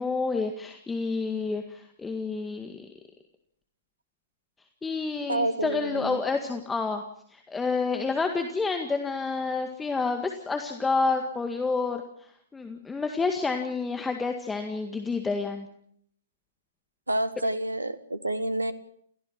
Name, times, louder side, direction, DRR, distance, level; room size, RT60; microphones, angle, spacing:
voice 1, 0.0-2.9 4.8-7.0 7.3-12.0 12.5-15.7, left 4 dB, 10° left, 5 dB, 1.9 m, -29 dB
voice 2, 5.3-6.2 17.1-18.7, right 1 dB, 85° right, 14 dB, 1.6 m, -28 dB
29.0 x 16.0 x 6.0 m, 0.67 s
figure-of-eight pair, 110°, 0 cm